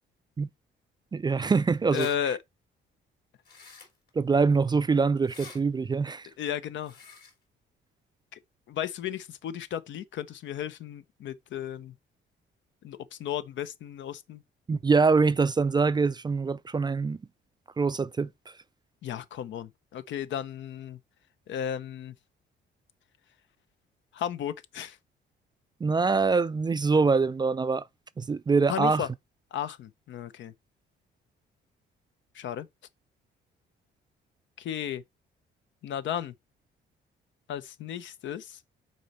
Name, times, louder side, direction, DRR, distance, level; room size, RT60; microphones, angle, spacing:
voice 1, 1.1-2.1 4.2-6.3 14.7-17.2 17.8-18.3 25.8-27.8 28.2-29.0, right 4 dB, 20° right, 0.3 m, -24 dB
voice 2, 1.9-2.4 6.4-7.0 8.3-8.4 8.7-11.9 12.8-14.4 19.0-21.0 21.5-22.1 24.1-25.0 28.7-29.1 29.5-30.5 32.3-32.7 34.6-35.0 35.8-36.3 37.5-38.6, left 9 dB, 70° left, 0.7 m, -34 dB
sound 1, 1.9-2.2 3.4-4.1 5.2-5.6 6.8-7.3, left 4 dB, 50° left, 3.3 m, -47 dB
6.3 x 4.2 x 4.2 m
cardioid pair, 90°, 20 cm